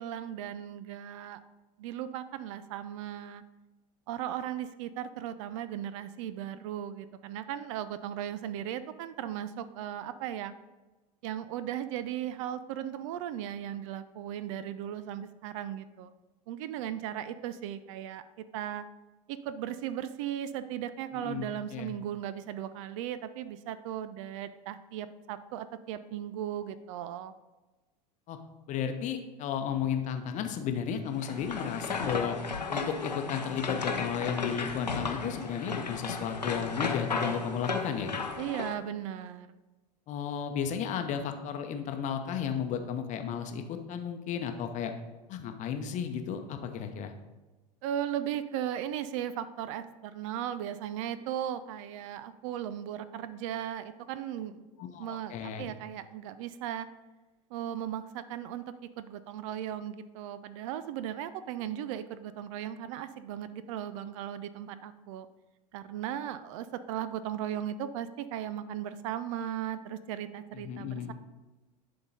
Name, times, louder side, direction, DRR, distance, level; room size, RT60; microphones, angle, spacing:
voice 1, 0.0-1.4 1.8-3.4 4.1-10.5 11.2-16.1 16.5-18.2 18.5-18.8 19.3-27.3 38.4-39.5 47.8-54.7 55.0-56.9 57.5-58.6 59.0-65.3 65.7-71.1, right 10 dB, 50° right, 13 dB, 0.4 m, -37 dB
voice 2, 21.1-21.9 28.3-28.4 28.7-32.4 32.7-38.1 40.1-44.9 45.3-47.1 54.8-55.7 70.6-71.1, left 7 dB, 35° left, 6 dB, 0.8 m, -33 dB
sound 1, 31.1-38.7, left 4 dB, 85° left, 0.7 m, -34 dB
10.5 x 3.8 x 4.1 m, 1.2 s
figure-of-eight pair, 80°, 21 cm